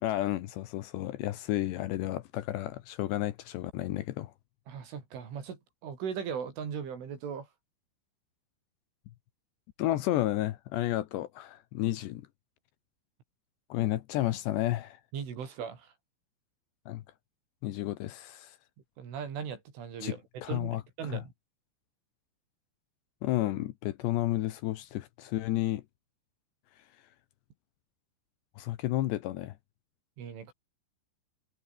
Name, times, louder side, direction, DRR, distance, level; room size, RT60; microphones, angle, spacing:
voice 1, 0.0-4.3 9.8-12.2 13.7-15.0 16.9-17.0 17.6-18.6 20.0-20.1 20.4-21.2 23.2-25.8 28.6-29.6, left 15 dB, 70° left, 2.9 m, -31 dB
voice 2, 4.7-7.5 15.1-15.9 19.0-20.2 20.5-20.7 21.0-21.3 30.2-30.5, right 7 dB, 75° right, 7.0 m, -38 dB
omnidirectional pair, 5.7 m